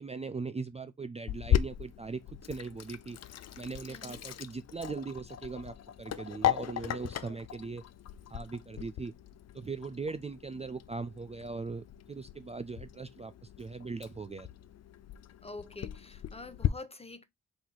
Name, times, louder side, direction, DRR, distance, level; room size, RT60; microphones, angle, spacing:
voice 1, 0.0-3.2 3.6-7.8 8.3-9.1 9.5-13.3 13.6-14.5, right 4 dB, 20° right, 0.4 m, -40 dB
Sink (filling or washing), 1.3-16.7, left 11 dB, 55° left, 0.5 m, -37 dB
voice 2, 3.9-4.2 7.2-7.4 15.4-17.2, left 3 dB, 20° left, 0.9 m, -46 dB
3.9 x 2.9 x 3.9 m
supercardioid pair, 45°, 32 cm